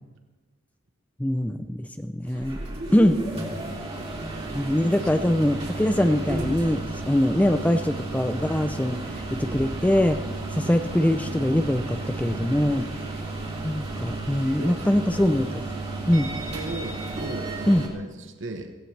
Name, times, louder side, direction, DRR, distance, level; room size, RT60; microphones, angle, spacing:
voice 1, 1.2-2.6 2.9-3.2 4.5-10.2 10.5-12.9 13.6-15.6 16.1-16.3 17.7-17.8, left 1 dB, 5° left, 8 dB, 0.5 m, -23 dB
sound 1, 2.2-17.9, right 2 dB, 30° right, 3.0 m, -33 dB
voice 2, 14.6-15.1 16.4-18.8, right 2 dB, 65° right, 6 dB, 1.1 m, -37 dB
17.5 x 17.0 x 3.3 m, 1.3 s
head